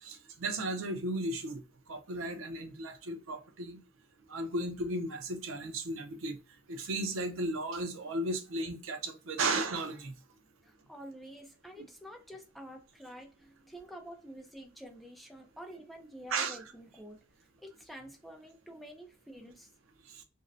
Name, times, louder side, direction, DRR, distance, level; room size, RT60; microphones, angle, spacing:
voice 1, 0.0-1.6 1.9-3.8 4.3-6.4 6.7-10.1 16.3-16.7 20.1-20.2, right 2 dB, 80° right, 0.5 m, -35 dB
voice 2, 10.6-17.2 17.6-19.7, equal, ahead, 0.4 m, -49 dB
2.6 x 2.0 x 2.5 m
head